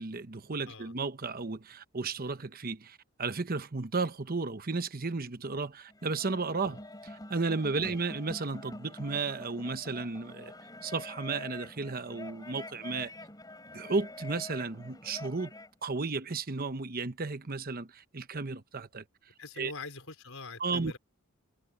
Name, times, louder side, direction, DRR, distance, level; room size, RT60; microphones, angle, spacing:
voice 1, 0.0-10.5 10.8-13.1 13.7-15.5 15.8-19.0 19.6-19.7 20.6-21.0, right 4 dB, 40° right, 1.0 m, -34 dB
sound 1, 5.9-15.7, left 1 dB, 15° left, 4.4 m, -46 dB
voice 2, 19.4-21.0, left 3 dB, 70° left, 4.7 m, -44 dB
head